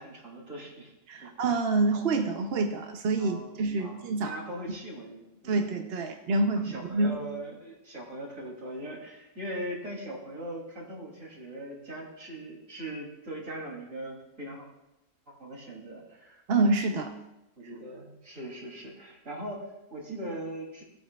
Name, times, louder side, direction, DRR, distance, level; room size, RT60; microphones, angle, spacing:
voice 1, 0.0-0.9 1.2-1.5 3.2-5.6 6.5-14.7 15.3-16.4 17.6-20.8, right 1 dB, 75° right, -3 dB, 3.4 m, -40 dB
voice 2, 1.1-4.3 5.5-7.2 16.5-17.1, right 3 dB, 55° right, 5 dB, 0.9 m, -27 dB
18.0 x 9.0 x 2.4 m, 0.90 s
omnidirectional pair, 1.4 m